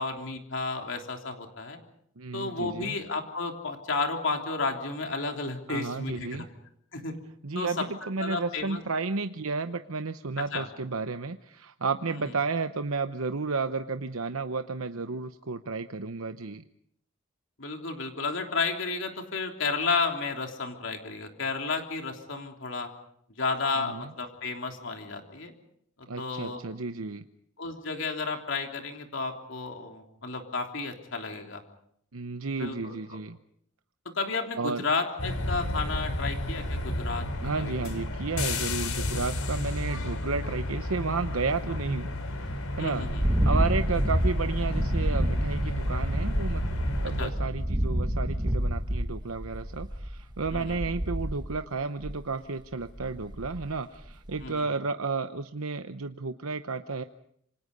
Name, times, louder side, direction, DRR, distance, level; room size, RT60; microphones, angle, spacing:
voice 1, 0.0-1.8 2.3-6.5 6.9-7.1 7.5-7.9 8.2-8.8 10.4-10.7 17.6-22.9 23.4-25.5 26.2-26.6 27.6-31.6 32.6-33.2 34.1-37.7 42.8-43.2 47.2-47.3 50.5-50.8 54.4-54.6, left 4 dB, 60° left, 4 dB, 3.3 m, -32 dB
voice 2, 2.2-3.0 5.7-6.5 7.4-16.6 23.8-24.1 26.1-27.2 32.1-33.4 34.6-34.8 37.4-42.1 42.8-46.6 47.0-57.0, right 4 dB, 80° right, 8 dB, 0.9 m, -32 dB
sound 1, 35.2-47.3, left 1 dB, 90° left, 3.7 m, -33 dB
sound 2, 43.0-51.6 52.0-52.3 52.8-53.8 54.1-54.4, equal, 20° right, 1.5 m, -28 dB
28.0 x 26.5 x 5.4 m, 0.68 s
head